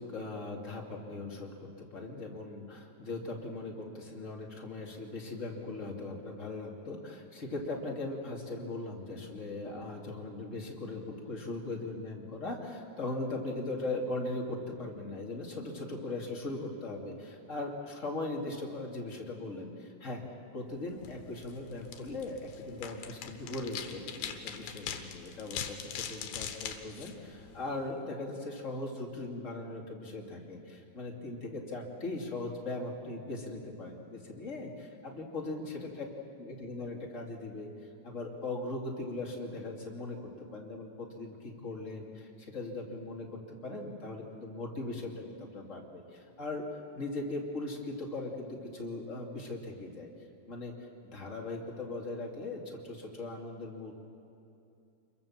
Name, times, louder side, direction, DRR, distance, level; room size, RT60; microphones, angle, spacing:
voice 1, 0.0-20.2 20.5-36.0 36.4-37.7 38.0-46.7 46.9-50.1 50.5-50.7 51.1-54.0, left 2 dB, 25° left, 0 dB, 2.2 m, -39 dB
sound 1, 20.9-27.9, left 8 dB, 85° left, 3.2 m, -42 dB
27.5 x 22.5 x 7.3 m, 2.6 s
omnidirectional pair, 4.4 m